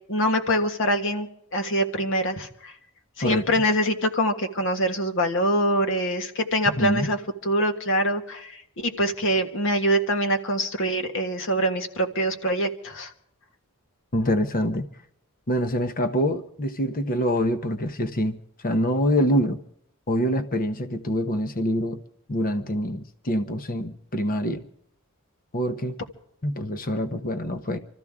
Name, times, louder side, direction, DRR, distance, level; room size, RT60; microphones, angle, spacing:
voice 1, 0.1-2.7 3.2-7.2 7.4-13.1, equal, 60° left, 5 dB, 1.7 m, -24 dB
voice 2, 6.7-7.1 14.1-14.9 15.5-19.6 20.1-22.0 22.3-24.6 25.5-26.0 26.4-27.8, equal, 40° left, 9 dB, 0.9 m, -25 dB
26.0 x 14.0 x 3.6 m, 0.69 s
head